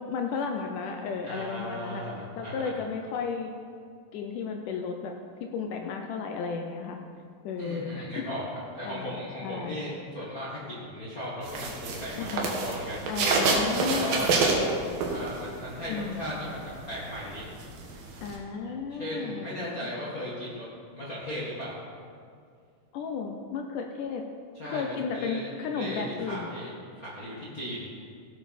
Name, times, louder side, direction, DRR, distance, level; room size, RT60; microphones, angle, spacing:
voice 1, 0.0-2.0 2.4-3.5 4.1-5.1 5.5-7.0 7.4-8.3 8.9-9.2 9.4-9.8 12.2-12.5 13.1-14.3 14.5-14.7 15.9-16.2 18.2-20.1 22.9-24.2 24.6-26.5, left 5 dB, 90° left, 3 dB, 1.8 m, -34 dB
voice 2, 1.2-2.7 7.6-8.4 8.7-13.0 13.9-14.5 15.1-17.5 18.6-20.7 20.9-21.8 24.6-25.5 25.7-26.7 27.0-27.9, equal, 40° left, -7 dB, 1.2 m, -36 dB
sound 1, 11.4-15.6 16.0-18.3, right 3 dB, 65° right, 3.0 m, -27 dB
16.5 x 9.2 x 4.2 m, 2.2 s
omnidirectional pair, 4.6 m